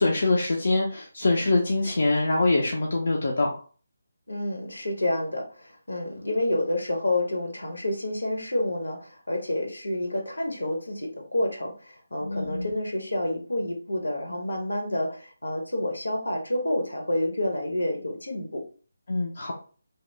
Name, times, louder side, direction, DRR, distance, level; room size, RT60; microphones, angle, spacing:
voice 1, 0.0-3.6 12.2-12.7 19.1-19.5, left 2 dB, 55° left, -1 dB, 0.5 m, -24 dB
voice 2, 4.3-18.6, left 1 dB, 70° left, 1 dB, 0.9 m, -29 dB
2.9 x 2.1 x 3.2 m, 0.39 s
figure-of-eight pair, 150°, 0 cm